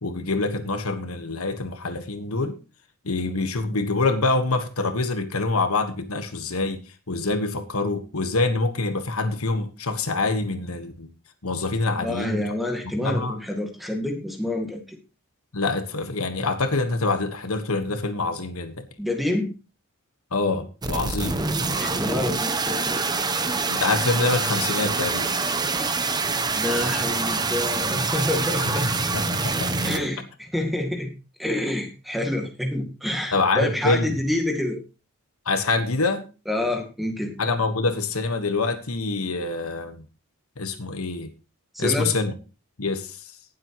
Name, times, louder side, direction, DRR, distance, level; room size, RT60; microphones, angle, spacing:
voice 1, 0.0-2.6 3.0-11.1 11.4-12.5 13.0-13.4 15.5-18.9 20.3-21.4 23.7-25.3 28.7-28.8 29.1-29.7 33.3-34.2 35.4-36.2 37.4-40.0 40.6-41.3 41.8-42.3 42.8-43.3, left 3 dB, 75° left, 8 dB, 1.4 m, -25 dB
voice 2, 11.9-15.0 19.0-19.6 21.8-23.0 26.5-28.9 29.8-31.1 31.4-34.8 36.5-37.3 41.7-42.1, left 1 dB, ahead, 3 dB, 2.0 m, -27 dB
sound 1, 20.8-30.0, right 3 dB, 20° right, 0.9 m, -25 dB
18.5 x 7.7 x 3.0 m, 0.32 s
head